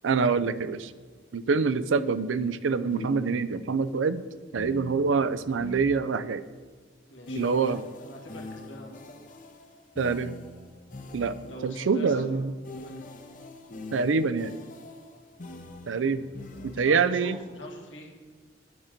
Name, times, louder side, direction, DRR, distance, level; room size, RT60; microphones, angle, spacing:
voice 1, 0.0-0.9 1.3-4.2 4.5-6.4 7.3-7.8 10.0-10.4 11.1-11.4 11.6-12.5 13.9-14.6 15.9-16.3 16.6-17.4, right 5 dB, 90° right, 14 dB, 0.5 m, -25 dB
sound 1, 0.9-1.0 1.9-3.7 4.6-6.5 7.3-11.8 12.6-17.1, left 1 dB, 45° left, 0.8 m, -43 dB
voice 2, 7.1-9.3 11.4-12.4 12.7-13.2 16.5-18.1, left 1 dB, 80° left, 0 dB, 1.7 m, -44 dB
9.4 x 7.4 x 5.1 m, 1.5 s
head